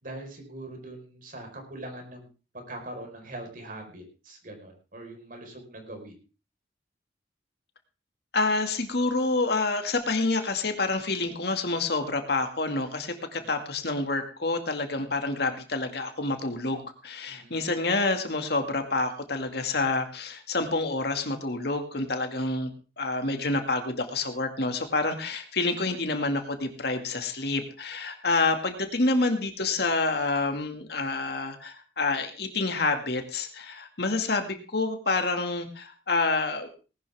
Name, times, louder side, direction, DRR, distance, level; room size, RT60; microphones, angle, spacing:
voice 1, 0.0-2.3 2.5-6.1 13.3-13.5 17.3-17.6, right 1 dB, 50° right, 4 dB, 4.7 m, -42 dB
voice 2, 8.3-22.7 23.0-36.7, left 3 dB, 65° left, 6 dB, 2.2 m, -28 dB
19.0 x 11.5 x 3.6 m, 0.34 s
head